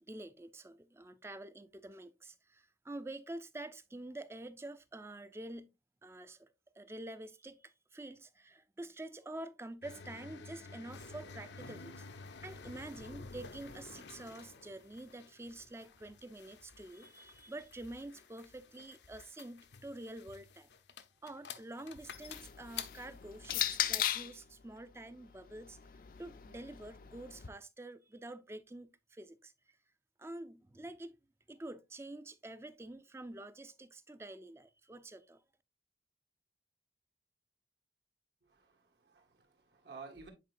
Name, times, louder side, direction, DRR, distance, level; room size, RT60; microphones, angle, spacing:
voice 1, 0.0-5.7 6.0-12.1 12.4-20.7 21.2-25.8 26.2-29.5 30.2-31.2 31.5-35.4, right 1 dB, 15° right, 0.4 m, -47 dB
sound 1, 9.8-23.7, left 5 dB, 80° left, 0.7 m, -51 dB
sound 2, 22.0-24.4 25.4-27.5, left 11 dB, 50° left, 0.4 m, -38 dB
voice 2, 38.4-40.3, right 4 dB, 75° right, 1.6 m, -53 dB
9.1 x 4.5 x 2.5 m
head